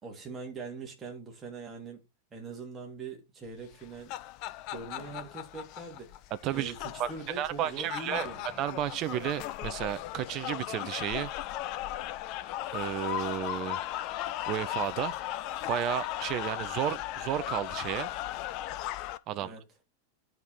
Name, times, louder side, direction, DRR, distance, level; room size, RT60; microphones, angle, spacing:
voice 1, 0.0-2.0 2.3-4.2 4.7-6.2 6.5-8.6 19.4-19.6, right 4 dB, 20° right, 3.3 m, -42 dB
sound 1, 3.7-19.2, left 14 dB, 40° left, 0.6 m, -37 dB
voice 2, 6.4-6.7 7.0-7.1 7.4-8.3 8.6-11.3 12.7-13.9 14.5-15.2 15.7-18.1 19.3-19.6, right 11 dB, 35° right, 0.6 m, -32 dB
10.5 x 5.2 x 4.4 m
figure-of-eight pair, 90°, 0 cm